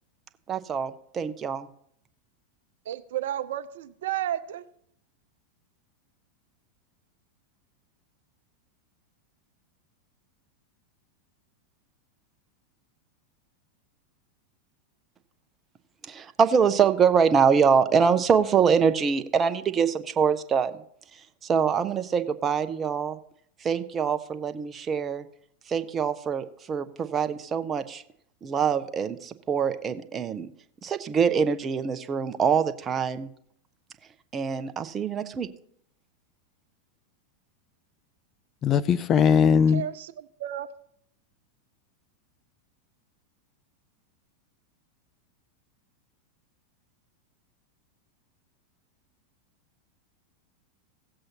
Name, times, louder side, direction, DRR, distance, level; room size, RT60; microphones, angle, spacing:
voice 1, 0.5-1.7 16.1-20.7 21.4-23.2 23.6-25.2 25.7-28.0 28.4-30.5 30.8-33.3 34.3-35.5, right 6 dB, 25° right, 0.8 m, -24 dB
voice 2, 2.9-4.7 39.7-40.7, right 11 dB, 60° right, 0.5 m, -32 dB
voice 3, 38.6-39.8, left 7 dB, 30° left, 0.5 m, -20 dB
17.5 x 7.7 x 2.9 m
figure-of-eight pair, 90°, 0 cm